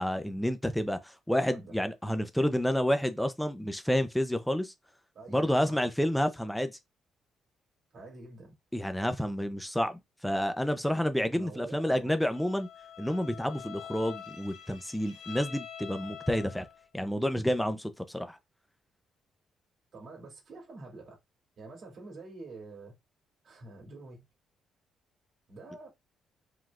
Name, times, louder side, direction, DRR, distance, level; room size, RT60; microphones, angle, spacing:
voice 1, 0.0-4.7 5.3-6.7 8.7-12.7 13.0-16.7 16.9-18.4, equal, 5° left, 0.6 m, -29 dB
voice 2, 5.1-5.9 7.9-8.5 11.3-12.2 19.9-21.2 21.6-22.9 23.4-24.2 25.5-25.9, right 3 dB, 55° right, 2.6 m, -47 dB
Bowed string instrument, 12.2-16.9, left 8 dB, 80° left, 1.0 m, -46 dB
4.9 x 3.7 x 2.4 m
cardioid pair, 90°, 0 cm